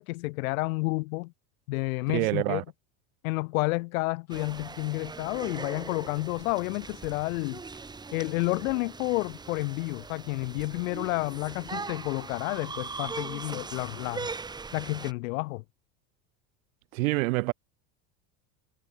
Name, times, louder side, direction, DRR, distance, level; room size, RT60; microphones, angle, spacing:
voice 1, 0.0-1.3 1.7-2.6 3.2-7.6 8.1-14.3 14.7-15.6, left 23 dB, 80° left, 1.3 m, -30 dB
voice 2, 2.1-2.6 16.9-17.5, right 23 dB, 80° right, 1.5 m, -26 dB
sound 1, 4.3-15.1, right 4 dB, 10° right, 3.7 m, -40 dB
cardioid pair, 170°, 41 cm